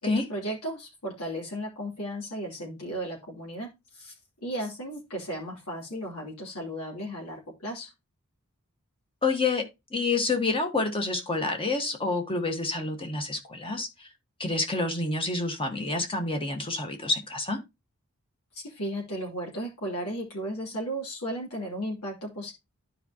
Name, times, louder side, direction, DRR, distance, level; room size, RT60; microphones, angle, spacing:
voice 1, 0.0-4.1 4.4-7.9 18.5-22.5, right 1 dB, 85° left, 3.0 m, -35 dB
voice 2, 9.2-14.1 14.4-17.6, left 3 dB, 25° left, 1.5 m, -28 dB
12.0 x 4.8 x 2.9 m
head